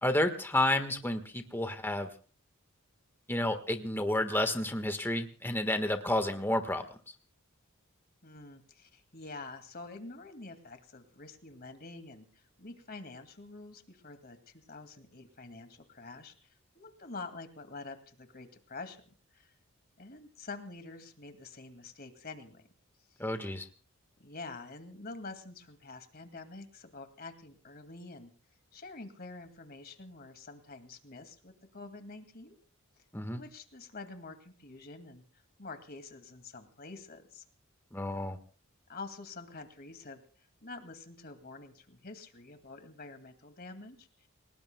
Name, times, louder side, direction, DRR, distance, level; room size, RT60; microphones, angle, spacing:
voice 1, 0.0-2.1 3.3-6.8 23.2-23.7 33.1-33.4 37.9-38.4, left 1 dB, 10° left, 7 dB, 1.5 m, -30 dB
voice 2, 8.2-19.5 20.0-22.7 24.2-28.3 28.7-32.6 33.3-35.2 35.6-37.4 38.9-40.2 40.6-44.3, left 3 dB, 45° left, 7 dB, 2.3 m, -47 dB
29.5 x 18.5 x 2.3 m, 0.38 s
head